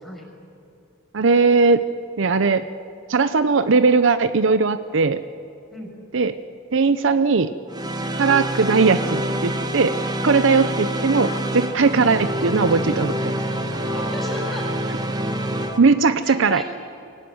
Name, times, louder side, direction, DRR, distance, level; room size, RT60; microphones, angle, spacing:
voice 1, 1.1-1.8 2.2-2.7 3.1-5.2 6.1-6.4 6.7-7.5 8.2-13.3 15.8-16.6, right 4 dB, 65° right, 12 dB, 0.6 m, -19 dB
sound 1, 7.7-15.8, right 1 dB, 20° right, 1.3 m, -26 dB
sound 2, 9.0-15.8, left 2 dB, 65° left, 2.0 m, -40 dB
voice 2, 13.7-14.6 16.2-16.6, equal, ahead, 0 dB, 5.9 m, -35 dB
24.0 x 17.5 x 9.5 m, 2.5 s
head